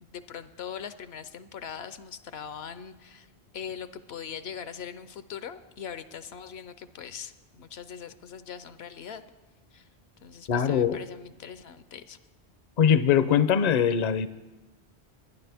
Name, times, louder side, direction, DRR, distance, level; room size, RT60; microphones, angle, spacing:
voice 1, 0.0-3.3 3.5-9.2 9.7-9.9 10.2-12.2, left 8 dB, 75° left, 12 dB, 0.9 m, -41 dB
voice 2, 10.5-11.0 12.8-14.3, left 8 dB, 50° left, 14 dB, 0.6 m, -22 dB
23.5 x 9.9 x 3.4 m, 1.1 s
omnidirectional pair, 1.1 m